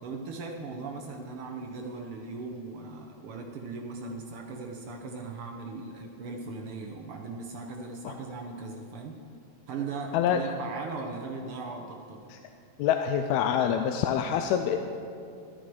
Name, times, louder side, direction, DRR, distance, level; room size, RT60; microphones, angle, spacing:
voice 1, 0.0-9.2 9.7-12.3, right 4 dB, 70° right, 1 dB, 1.3 m, -38 dB
voice 2, 12.8-14.8, left 9 dB, 80° left, 6 dB, 1.8 m, -26 dB
13.0 x 10.5 x 4.6 m, 2.6 s
omnidirectional pair, 3.3 m